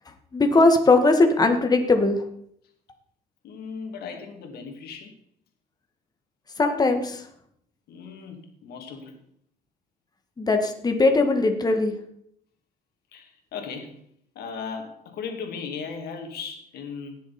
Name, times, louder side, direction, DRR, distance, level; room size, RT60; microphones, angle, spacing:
voice 1, 0.3-2.2 6.6-7.3 10.4-11.9, left 3 dB, 25° left, 5 dB, 1.8 m, -20 dB
voice 2, 3.4-5.2 7.9-9.2 13.1-14.0 14.3-17.2, left 5 dB, 70° left, 4 dB, 2.8 m, -37 dB
18.0 x 7.3 x 4.3 m, 0.68 s
cardioid pair, 110°, 17 cm